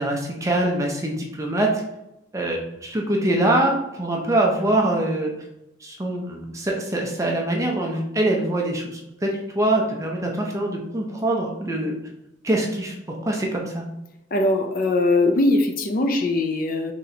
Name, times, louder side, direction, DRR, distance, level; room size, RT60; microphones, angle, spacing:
voice 1, 0.0-1.8 2.3-5.3 5.8-12.0 12.4-13.9, right 1 dB, 15° right, 0 dB, 0.5 m, -24 dB
voice 2, 14.3-16.9, left 2 dB, 45° left, 6 dB, 0.5 m, -21 dB
4.0 x 3.1 x 2.8 m, 0.89 s
head